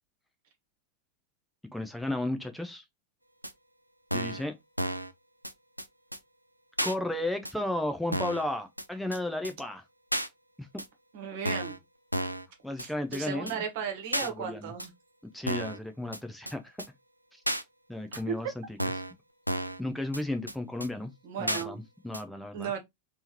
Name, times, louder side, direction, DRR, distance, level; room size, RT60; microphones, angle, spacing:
voice 1, 1.7-2.8 4.1-4.5 6.8-9.8 10.6-10.7 12.6-13.6 14.2-14.7 15.3-16.8 17.3-17.4 17.9-18.6 19.8-21.1 21.4-22.7, left 1 dB, 5° left, 0.5 m, -34 dB
sound 1, 3.4-3.5 4.1-4.4 4.8-5.1 5.4-5.5 5.8-5.9 6.1-6.2 6.8-6.9 7.4-7.5 8.1-8.4 8.8-8.9 9.1-9.2 9.4-9.5 10.1-10.3 10.8-10.9 11.4-11.8 12.1-12.5 12.8-12.9 13.1-13.2 13.5-13.6 14.1-14.3 14.8-14.9 15.5-15.8 16.1-16.2 16.5-16.6 16.8-16.9 17.5-17.6 18.1-18.2 18.8-19.1 19.5-19.8 20.1-20.2 20.5-20.6 20.8-20.9 21.5-21.6 22.1-22.2, equal, 90° right, 0.4 m, -32 dB
voice 2, 11.1-11.7 12.8-14.9 18.1-18.3 21.2-21.8 22.5-22.8, right 7 dB, 50° right, 1.2 m, -35 dB
3.4 x 2.9 x 2.9 m
figure-of-eight pair, 90°, 0 cm